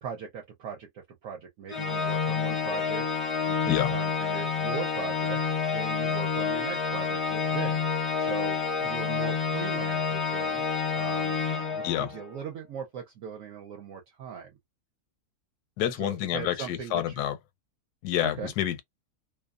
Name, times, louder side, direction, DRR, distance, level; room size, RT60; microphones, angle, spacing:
voice 1, 0.0-3.1 3.5-7.8 8.2-10.7 10.9-11.4 11.7-14.5 16.0-17.2 18.2-18.5, right 7 dB, 70° right, 0.9 m, -39 dB
Organ, 1.7-12.3, left 5 dB, 40° left, 0.4 m, -28 dB
voice 2, 15.8-17.4 18.0-18.8, left 12 dB, 85° left, 1.1 m, -28 dB
2.6 x 2.2 x 2.3 m
omnidirectional pair, 1.7 m